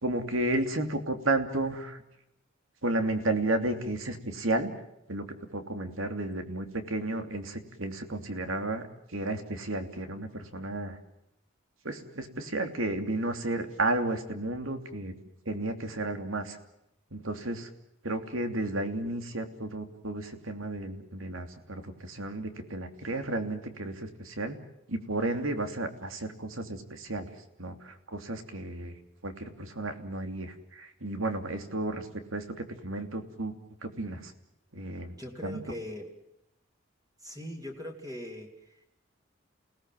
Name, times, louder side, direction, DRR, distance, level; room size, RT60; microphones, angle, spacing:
voice 1, 0.0-2.0 2.8-4.7 5.1-8.9 9.1-11.0 11.8-15.1 15.4-16.6 17.1-17.7 18.0-24.6 24.9-27.3 27.6-28.9 29.2-33.5 33.8-34.3 34.7-35.1 35.4-35.6, right 2 dB, 85° right, 7 dB, 3.0 m, -33 dB
voice 2, 35.2-36.1 37.2-38.9, left 1 dB, 20° right, 2 dB, 2.9 m, -40 dB
29.0 x 18.5 x 7.7 m, 0.83 s
head